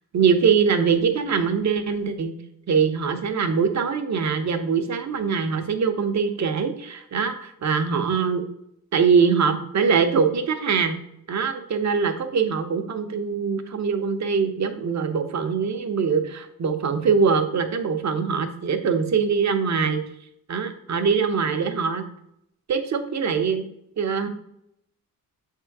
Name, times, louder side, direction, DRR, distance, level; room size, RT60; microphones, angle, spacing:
voice 1, 0.1-2.4 2.7-8.4 8.9-11.0 11.3-20.0 20.5-22.0 22.7-23.7 24.0-24.3, right 6 dB, 50° right, 7 dB, 0.8 m, -23 dB
7.3 x 3.7 x 4.6 m, 0.77 s
wide cardioid pair, 165°, 36 cm